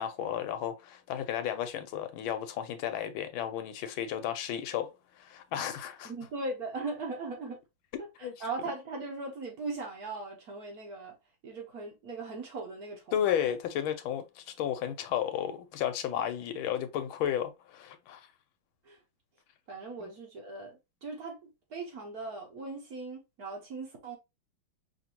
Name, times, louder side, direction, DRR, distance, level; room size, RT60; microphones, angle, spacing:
voice 1, 0.0-4.9 5.2-6.1 8.2-8.3 13.1-18.3 20.0-20.1, left 10 dB, 80° left, 1.4 m, -33 dB
voice 2, 6.0-7.6 8.0-11.2 11.4-13.5 18.8-19.0 19.7-24.2, right 3 dB, 55° right, 1.3 m, -39 dB
5.1 x 2.6 x 2.9 m
omnidirectional pair, 2.3 m